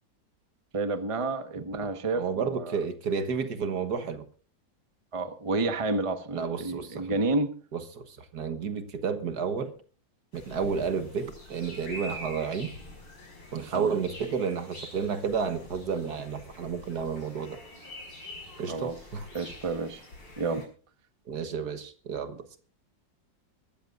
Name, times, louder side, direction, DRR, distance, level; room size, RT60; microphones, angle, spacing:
voice 1, 0.7-2.8 5.1-7.5 13.7-13.9 18.7-18.9 19.3-20.0 20.4-20.7, right 3 dB, 20° right, 1.0 m, -30 dB
voice 2, 1.8-4.2 6.3-7.2 7.7-9.7 10.3-12.7 13.5-17.6 18.6-19.3 21.3-22.6, right 6 dB, 60° right, 1.7 m, -31 dB
sound 1, 10.3-20.6, left 1 dB, 75° left, 6.0 m, -46 dB
23.5 x 13.5 x 2.5 m
omnidirectional pair, 2.0 m